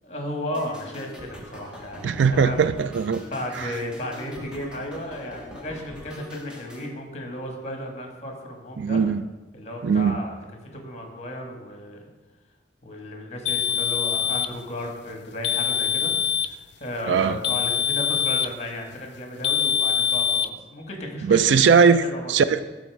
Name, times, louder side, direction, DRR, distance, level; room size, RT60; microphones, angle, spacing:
voice 1, 0.0-2.5 3.3-9.0 9.5-10.4 10.7-12.1 12.8-16.1 16.4-21.5 21.8-22.3, left 1 dB, 40° left, 2 dB, 1.6 m, -34 dB
sound 1, 0.5-6.9, left 1 dB, 5° right, 1.0 m, -43 dB
voice 2, 2.0-3.2 3.6-3.7 8.8-9.3 9.8-10.2 17.1-17.4 21.2-22.0 22.3-22.6, right 6 dB, 85° right, 13 dB, 0.4 m, -19 dB
sound 2, 13.5-14.6 15.4-16.6 17.4-18.6 19.4-20.5, left 8 dB, 70° left, 0.4 m, -24 dB
12.0 x 4.2 x 4.6 m, 1.1 s
head